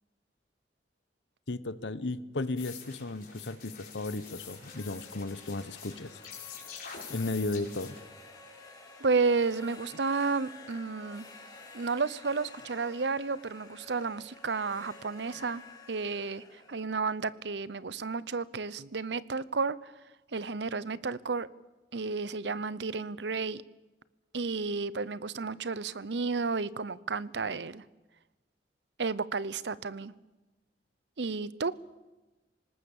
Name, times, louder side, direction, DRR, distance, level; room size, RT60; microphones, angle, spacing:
voice 1, 1.5-6.2 7.1-8.0, left 2 dB, 85° left, 15 dB, 1.1 m, -35 dB
sound 1, 2.6-8.0, left 7 dB, 55° left, 5.3 m, -46 dB
sound 2, 4.1-17.9, left 3 dB, 20° left, 5.6 m, -52 dB
voice 2, 9.0-11.3 11.7-15.6 15.9-19.9 20.3-21.5 21.9-23.6 24.3-27.8 29.0-30.1 31.2-31.7, right 4 dB, 75° right, 19 dB, 0.8 m, -32 dB
26.0 x 19.0 x 7.3 m, 1.1 s
head